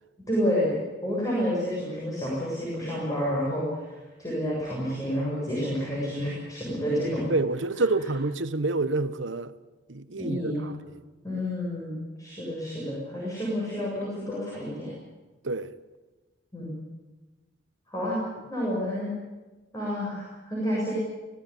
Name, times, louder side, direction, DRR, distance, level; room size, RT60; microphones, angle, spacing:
voice 1, 0.3-7.3 10.2-10.7 11.2-14.9 16.5-16.8 17.9-18.2 18.5-19.1 19.7-20.9, equal, 20° left, 7.4 m, -29 dB
voice 2, 7.3-9.5 9.9-11.0 15.4-15.7, right 3 dB, 85° right, 1.1 m, -28 dB
25.5 x 17.5 x 9.9 m
head